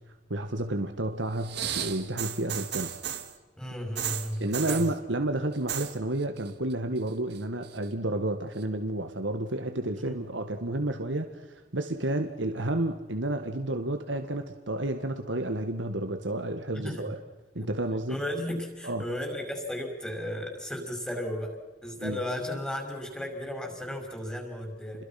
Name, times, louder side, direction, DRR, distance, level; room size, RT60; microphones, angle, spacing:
voice 1, 0.3-2.9 4.4-17.2 17.6-18.2 18.8-19.1 22.0-22.2, right 1 dB, 85° right, 6 dB, 1.8 m, -31 dB
sound 1, 1.4-3.3 4.0-4.9 5.5-6.0 6.2-6.7 7.1-7.8 8.6-8.7, right 9 dB, 60° right, 2.2 m, -34 dB
voice 2, 3.6-4.9 10.1-10.2 16.7-17.0 17.6-17.7 18.1-25.0, left 1 dB, 5° left, 2 dB, 5.6 m, -35 dB
30.0 x 22.5 x 5.9 m, 1.2 s
head